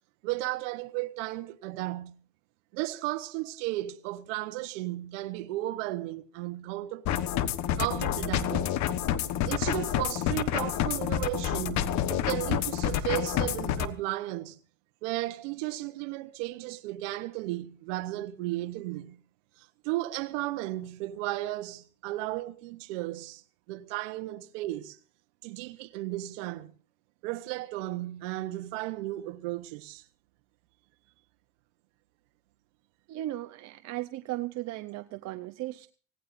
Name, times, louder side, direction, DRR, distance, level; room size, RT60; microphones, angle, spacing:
voice 1, 0.2-2.1 2.7-7.1 7.8-8.8 9.5-14.6 15.0-19.2 19.6-23.4 23.7-25.0 25.4-26.7 27.2-30.1, right 17 dB, 85° right, 1.1 m, -34 dB
sound 1, 7.0-13.9, left 10 dB, 50° left, 1.3 m, -29 dB
voice 2, 33.1-35.9, right 16 dB, 45° right, 0.8 m, -36 dB
25.0 x 17.5 x 2.6 m
cardioid pair, 135°, 36 cm